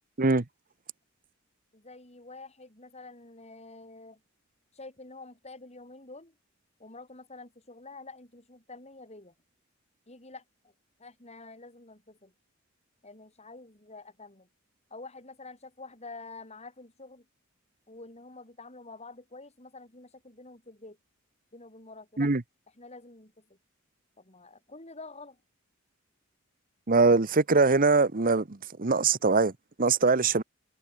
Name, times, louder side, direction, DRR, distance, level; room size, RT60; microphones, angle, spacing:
voice 1, 1.7-4.2 4.7-6.3 6.8-9.3 10.1-10.7 11.0-12.3 13.0-14.5 14.9-17.2 17.9-21.0 21.5-22.3 22.8-23.6 24.2-25.4, left 3 dB, 30° left, 6.5 m, -48 dB
voice 2, 26.9-29.5 29.8-30.4, right 4 dB, 40° right, 1.0 m, -22 dB
head